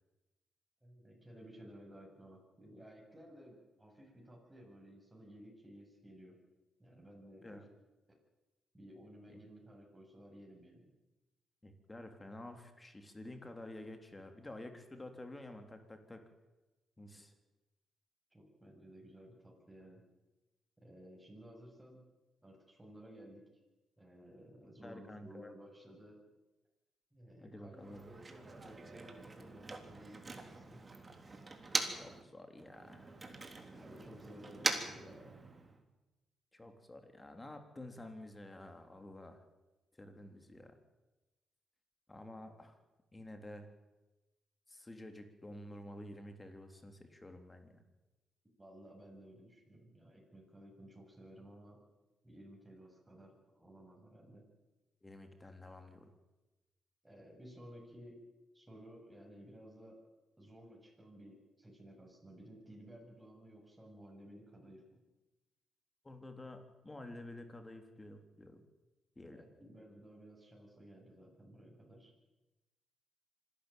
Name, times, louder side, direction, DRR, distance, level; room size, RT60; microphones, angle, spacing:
voice 1, 0.8-6.4 6.8-7.6 8.7-10.9 18.3-20.0 20.8-22.1 22.4-23.4 24.0-26.2 27.1-30.8 33.7-35.3 48.6-51.8 52.2-54.5 57.0-58.2 58.5-60.0 60.4-65.0 69.3-72.1, equal, 10° right, -1 dB, 7.8 m, -56 dB
voice 2, 11.6-16.2 17.0-17.3 24.8-25.5 27.4-28.1 32.0-33.1 36.5-39.4 39.9-40.8 42.1-42.8 43.1-43.7 44.7-47.8 55.0-56.1 66.0-68.6 69.1-69.4, left 1 dB, 20° left, 6 dB, 3.5 m, -50 dB
Motor vehicle (road), 27.8-32.2 32.5-35.8, right 3 dB, 30° right, 3.3 m, -42 dB
25.5 x 12.0 x 9.3 m, 1.1 s
supercardioid pair, 60°, 0 cm